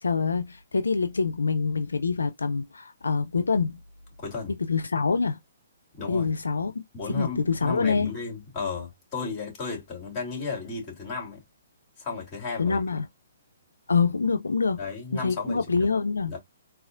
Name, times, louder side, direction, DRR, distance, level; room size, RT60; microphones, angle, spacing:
voice 1, 0.0-3.8 4.7-5.4 6.1-8.1 12.6-13.1 13.9-14.8 15.1-16.3, left 4 dB, 85° left, 0.4 m, -25 dB
voice 2, 4.2-4.5 6.0-6.3 6.9-11.4 12.0-12.8 14.8-15.9 16.3-16.4, left 4 dB, 25° left, 2.8 m, -34 dB
4.1 x 2.4 x 2.4 m
hypercardioid pair, 135°, 0 cm